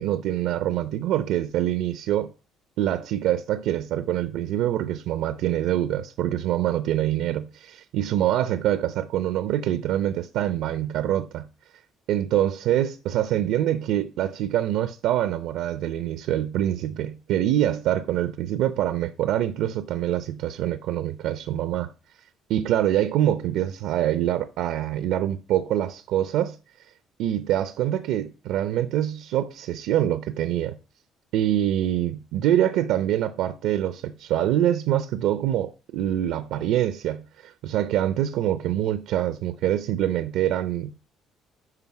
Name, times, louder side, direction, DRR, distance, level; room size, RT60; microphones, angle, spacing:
voice 1, 0.0-2.3 2.8-11.5 12.1-21.9 22.5-26.6 27.2-30.8 31.3-41.0, right 12 dB, 80° right, 0.6 m, -25 dB
9.8 x 5.1 x 5.9 m
cardioid pair, 150°, 0 cm